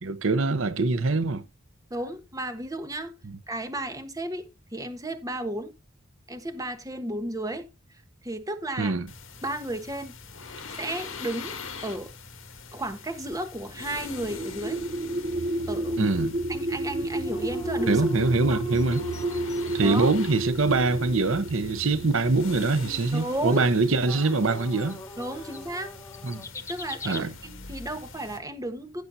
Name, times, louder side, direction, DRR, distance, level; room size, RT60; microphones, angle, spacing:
voice 1, 0.0-1.4 3.2-3.4 8.8-9.1 16.0-16.3 17.9-19.0 19.7-25.0 26.2-26.4 27.0-27.3, right 3 dB, 70° right, 0.9 m, -24 dB
voice 2, 1.9-3.1 3.5-5.7 6.3-7.7 8.2-9.0 9.4-10.1 10.8-11.5 11.8-12.1 12.7-14.8 15.7-16.1 16.5-18.1 18.5-18.6 19.8-20.1 23.1-23.6 25.2-25.9 26.7-29.0, right 1 dB, 15° right, 1.4 m, -33 dB
sound 1, 9.1-28.4, left 4 dB, 75° left, 2.0 m, -43 dB
sound 2, 14.2-22.5, right 1 dB, 40° right, 0.6 m, -31 dB
sound 3, 17.2-20.1 20.4-20.5 20.8-20.9 24.0-27.2, left 1 dB, 15° left, 0.8 m, -39 dB
15.5 x 6.8 x 2.7 m
head